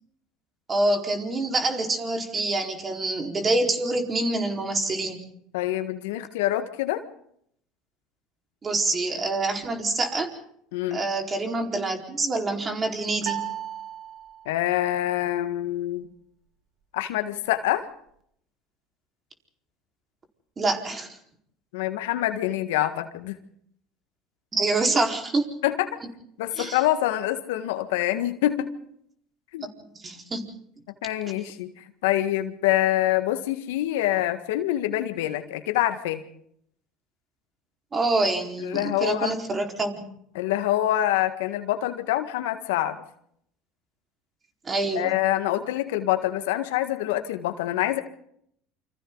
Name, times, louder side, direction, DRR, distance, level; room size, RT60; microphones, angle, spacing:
voice 1, 0.7-5.2 8.6-10.3 10.9-13.4 20.6-21.1 24.5-25.5 26.6-26.8 29.9-30.4 37.9-40.0 44.6-45.1, right 2 dB, 30° right, 3 dB, 4.5 m, -26 dB
voice 2, 5.5-7.0 10.7-11.0 14.4-16.1 16.9-17.9 21.7-23.3 25.6-25.9 26.4-28.7 29.5-29.7 31.0-36.2 38.6-39.3 40.3-43.0 44.9-48.0, left 14 dB, 80° left, 9 dB, 1.7 m, -26 dB
sound 1, 13.2-14.7, right 11 dB, 50° right, 2.1 m, -35 dB
28.5 x 26.0 x 4.0 m, 0.69 s
hypercardioid pair, 85°, 0 cm